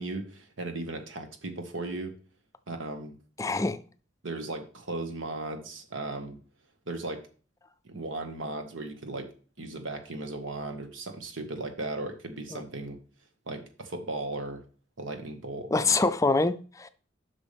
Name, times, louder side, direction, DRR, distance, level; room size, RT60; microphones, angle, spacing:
voice 1, 0.0-2.1 2.7-3.2 4.2-6.4 6.9-7.2 7.8-9.3 9.6-13.0 13.5-14.6 15.0-16.0, right 2 dB, 85° right, 1.5 m, -36 dB
voice 2, 3.4-3.8 12.5-12.6 15.7-16.9, left 3 dB, 15° left, 0.4 m, -25 dB
11.0 x 6.1 x 3.4 m
head